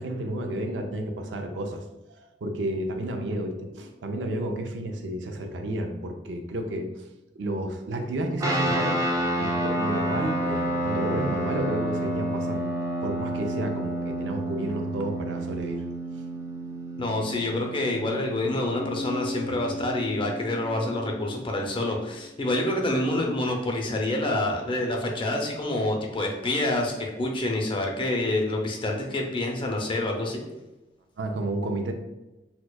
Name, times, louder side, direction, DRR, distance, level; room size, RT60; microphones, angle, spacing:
voice 1, 0.0-6.9 7.4-9.0 9.4-12.7 13.0-15.8 31.2-31.9, right 1 dB, 85° right, 4 dB, 0.5 m, -31 dB
sound 1, 8.4-20.2, right 1 dB, 20° right, 0.5 m, -30 dB
voice 2, 17.0-30.4, left 1 dB, 30° left, 1 dB, 0.5 m, -27 dB
Bass guitar, 18.8-22.4, left 2 dB, 85° left, 0.6 m, -37 dB
4.3 x 2.3 x 2.3 m, 1.0 s
head